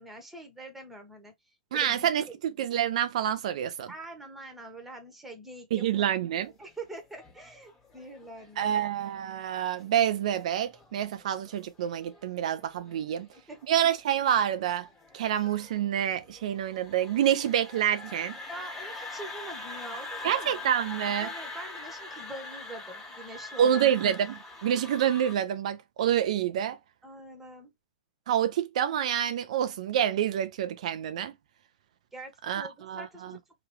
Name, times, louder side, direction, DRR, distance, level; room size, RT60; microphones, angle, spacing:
voice 1, 0.0-1.3 1.7-2.4 3.9-6.1 6.6-8.8 13.5-13.6 18.5-20.7 21.2-23.8 24.7-24.9 27.0-27.7 32.1-33.4, right 2 dB, 5° right, 1.2 m, -44 dB
voice 2, 1.7-3.9 5.7-6.5 8.6-13.3 13.7-14.9 15.1-18.4 20.2-21.3 23.6-26.8 28.3-31.3 32.5-33.4, right 10 dB, 65° right, 0.4 m, -27 dB
sound 1, 6.5-25.3, left 3 dB, 15° left, 1.5 m, -44 dB
3.0 x 2.3 x 3.1 m
hypercardioid pair, 130°, 4 cm